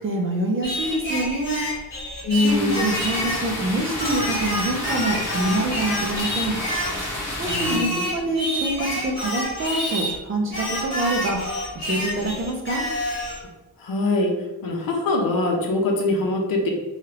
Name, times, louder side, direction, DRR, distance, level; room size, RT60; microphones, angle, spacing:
voice 1, 0.0-1.6 2.3-6.6 7.4-11.4 11.7-12.8, right 1 dB, 35° right, 2 dB, 0.4 m, -26 dB
Singing, 0.6-3.5 4.0-7.0 7.5-10.2 10.5-13.4, equal, 30° left, 1.3 m, -28 dB
voice 2, 2.2-2.9 7.4-8.1 13.8-14.4 14.6-16.7, left 2 dB, 55° left, 1 dB, 0.7 m, -23 dB
sound 1, 2.4-7.8, left 1 dB, 5° right, 0.9 m, -30 dB
3.2 x 2.4 x 2.9 m, 1.1 s
wide cardioid pair, 165°, 40 cm